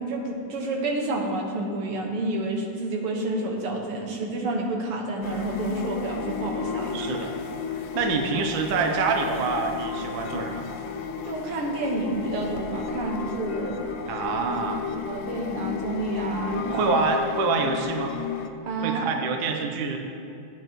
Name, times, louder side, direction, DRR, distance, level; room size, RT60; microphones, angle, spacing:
voice 1, 0.0-7.1 11.2-13.8 14.4-14.7 15.0-16.9 18.7-19.0, right 2 dB, 85° right, 0 dB, 2.2 m, -29 dB
sound 1, 5.2-18.5, left 6 dB, 75° left, 1.5 m, -33 dB
voice 2, 6.9-7.3 7.9-10.7 14.1-14.8 16.7-18.1 18.8-20.0, right 4 dB, 70° right, 3 dB, 1.4 m, -26 dB
15.5 x 8.9 x 3.0 m, 2.5 s
omnidirectional pair, 2.4 m